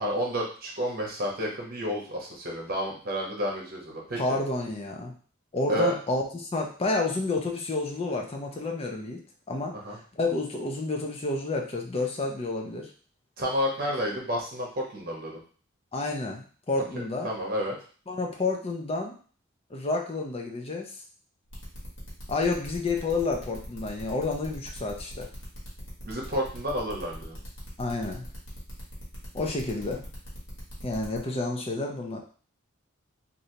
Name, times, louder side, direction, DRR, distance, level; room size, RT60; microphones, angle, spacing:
voice 1, 0.0-4.4 5.7-6.0 9.8-10.0 13.4-15.4 17.2-17.8 26.0-27.4, equal, 45° right, -2 dB, 1.0 m, -30 dB
voice 2, 4.2-5.1 5.5-9.2 9.5-12.9 15.9-17.3 18.1-19.2 19.7-20.9 22.3-25.3 27.8-28.3 29.3-30.0 30.8-32.2, left 3 dB, 30° left, 1 dB, 0.5 m, -30 dB
sound 1, 21.5-31.2, equal, 65° left, 1.3 m, -44 dB
3.2 x 2.6 x 2.7 m, 0.41 s
head